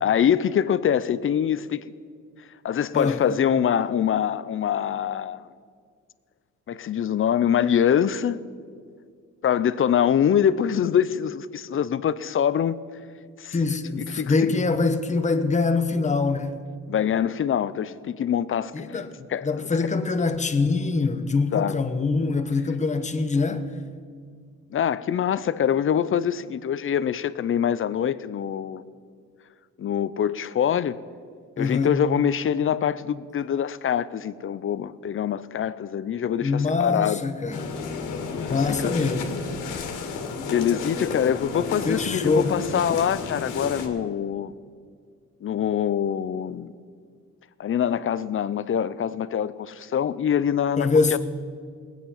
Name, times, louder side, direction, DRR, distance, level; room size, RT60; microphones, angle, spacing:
voice 1, 0.0-1.8 2.6-5.5 6.7-8.4 9.4-12.8 13.4-13.6 14.1-14.3 16.9-19.0 19.3-19.5 21.5-21.8 24.7-28.8 29.8-31.0 31.6-37.2 38.5-38.9 40.5-44.5 45.4-46.7 47.6-51.2, left 9 dB, 45° left, 0.6 m, -24 dB
voice 2, 2.9-3.3 13.5-16.6 18.7-23.6 31.6-32.0 36.4-37.8 38.4-39.3 41.9-42.6 50.8-51.2, left 4 dB, 25° left, 1.0 m, -24 dB
sound 1, 37.5-43.9, left 5 dB, 90° left, 1.7 m, -32 dB
19.5 x 9.1 x 5.6 m
cardioid pair, 90°, 30 cm